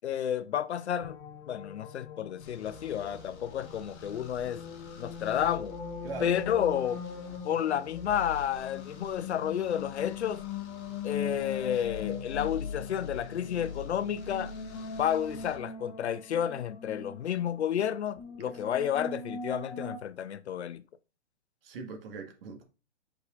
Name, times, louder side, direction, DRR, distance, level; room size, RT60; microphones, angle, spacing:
voice 1, 0.0-1.2 1.5-4.6 5.0-5.8 6.2-7.0 7.4-10.4 11.0-14.5 15.0-20.8, left 9 dB, 65° left, 0.7 m, -31 dB
sound 1, 0.8-20.0, left 6 dB, 25° left, 0.9 m, -41 dB
sound 2, 2.4-15.6, left 4 dB, 40° left, 2.0 m, -46 dB
voice 2, 6.0-6.4 18.4-18.7 21.6-22.6, right 4 dB, 50° right, 1.7 m, -41 dB
8.1 x 4.8 x 2.5 m
hypercardioid pair, 140°, 35 cm